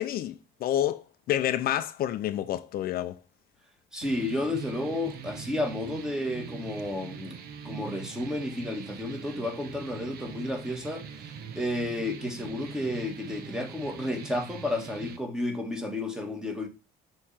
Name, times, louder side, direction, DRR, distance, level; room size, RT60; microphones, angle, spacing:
voice 1, 0.0-3.2, left 12 dB, 60° left, 0.5 m, -29 dB
voice 2, 3.9-7.3 7.6-11.0 11.5-16.7, left 1 dB, 5° right, 1.5 m, -32 dB
sound 1, 4.0-15.2, right 7 dB, 65° right, 0.9 m, -42 dB
6.5 x 3.2 x 5.6 m
cardioid pair, 110°, 17 cm